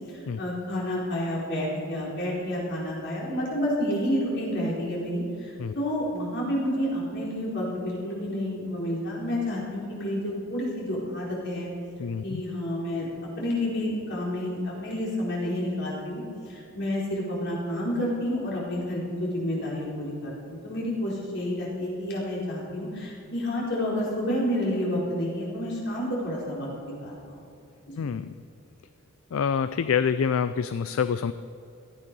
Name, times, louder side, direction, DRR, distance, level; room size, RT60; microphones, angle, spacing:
voice 1, 0.1-11.7 12.2-13.1 13.4-27.4 27.9-28.1, left 1 dB, 60° left, -5 dB, 4.5 m, -30 dB
voice 2, 12.0-12.4 28.0-28.3 29.3-31.3, left 6 dB, 75° left, 13 dB, 0.4 m, -26 dB
17.5 x 13.5 x 5.4 m, 2.7 s
head